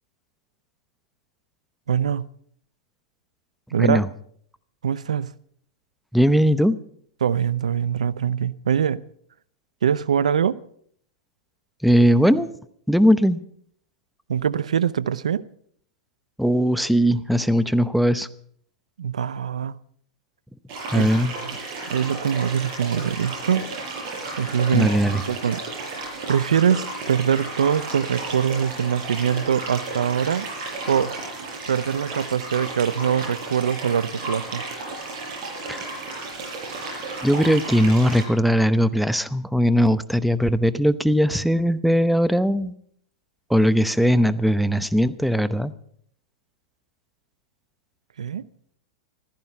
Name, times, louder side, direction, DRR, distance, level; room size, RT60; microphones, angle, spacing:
voice 1, 1.9-2.3 3.7-4.0 4.8-5.3 7.2-9.0 9.8-10.6 14.3-15.4 19.0-19.8 20.9-21.1 21.5-21.6 21.9-23.6 24.4-24.9 25.3-25.6 26.3-30.5 30.9-31.1 31.7-34.6 48.2-48.4, right 8 dB, 85° right, 0.6 m, -23 dB
voice 2, 6.1-6.8 11.8-12.5 12.9-13.4 16.4-18.3 20.9-21.3 24.7-25.2 35.7-35.9 37.2-42.7 43.5-45.7, equal, ahead, 0.8 m, -19 dB
sound 1, 20.7-38.2, right 3 dB, 45° right, 7.2 m, -33 dB
15.5 x 14.0 x 5.8 m
hypercardioid pair, 115°, 4 cm